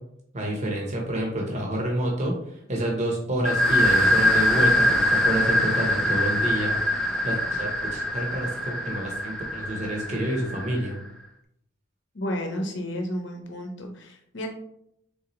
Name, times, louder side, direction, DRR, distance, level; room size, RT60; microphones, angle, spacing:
voice 1, 0.3-11.0, right 1 dB, 35° right, -1 dB, 0.8 m, -28 dB
sound 1, 3.4-10.9, left 1 dB, 5° left, 0.4 m, -23 dB
voice 2, 12.1-14.5, equal, 60° left, 2 dB, 0.8 m, -32 dB
4.0 x 3.7 x 3.0 m, 0.74 s
head